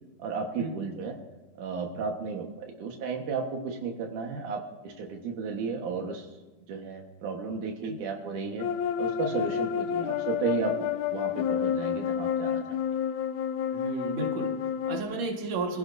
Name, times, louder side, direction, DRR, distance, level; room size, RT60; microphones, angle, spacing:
voice 1, 0.2-1.2 1.6-6.3 6.7-8.7 9.0-12.6, right 5 dB, 80° right, 1 dB, 2.9 m, -33 dB
sound 1, 8.6-15.0, left 8 dB, 80° left, 2.0 m, -29 dB
voice 2, 13.7-15.8, right 3 dB, 60° right, 1 dB, 2.8 m, -33 dB
25.5 x 15.5 x 2.7 m, 1.2 s
omnidirectional pair, 3.5 m